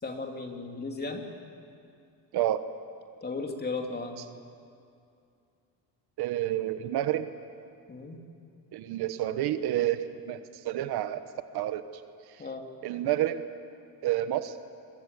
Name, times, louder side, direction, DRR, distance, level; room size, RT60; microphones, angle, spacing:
voice 1, 0.0-1.2 3.2-4.2 7.9-8.2 12.4-12.7, left 3 dB, 25° left, 3 dB, 3.2 m, -35 dB
voice 2, 2.3-2.6 6.2-7.3 8.7-11.3 11.5-11.8 12.8-13.4 14.0-14.6, right 13 dB, 65° right, 11 dB, 1.3 m, -29 dB
28.5 x 23.5 x 8.4 m, 2.5 s
cardioid pair, 120°, 41 cm